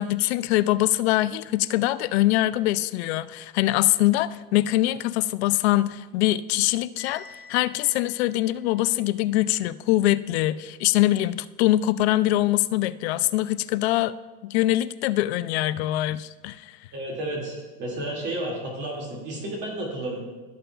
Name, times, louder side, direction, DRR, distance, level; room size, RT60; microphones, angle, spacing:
voice 1, 0.0-14.1 14.4-16.8, left 15 dB, 80° left, 15 dB, 0.5 m, -23 dB
Bell, 7.0-9.0, left 6 dB, 35° left, 1.3 m, -47 dB
voice 2, 16.9-20.2, right 1 dB, 35° right, -2 dB, 2.2 m, -32 dB
15.0 x 6.7 x 2.3 m, 1.3 s
supercardioid pair, 175°, 32 cm